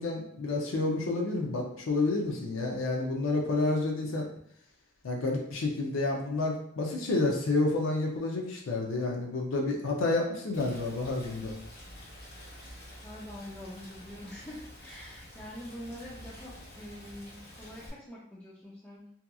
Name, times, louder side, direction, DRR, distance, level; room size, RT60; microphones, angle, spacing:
voice 1, 0.0-4.3 5.0-11.5, left 2 dB, 90° left, 0 dB, 0.5 m, -29 dB
Rain, 10.5-17.9, left 1 dB, 55° left, 0.9 m, -48 dB
voice 2, 13.0-19.1, left 1 dB, 5° left, -7 dB, 0.3 m, -45 dB
2.8 x 2.3 x 2.3 m, 0.66 s
head